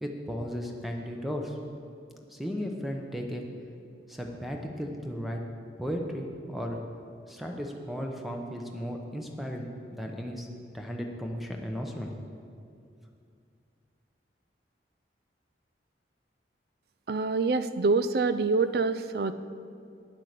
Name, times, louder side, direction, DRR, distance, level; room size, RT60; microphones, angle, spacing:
voice 1, 0.0-1.5 2.3-3.5 4.1-5.4 5.8-6.8 7.3-10.5 10.7-12.1, equal, ahead, 1 dB, 0.8 m, -35 dB
voice 2, 17.1-19.3, right 4 dB, 55° right, 13 dB, 0.4 m, -26 dB
9.9 x 7.5 x 6.7 m, 2.4 s
head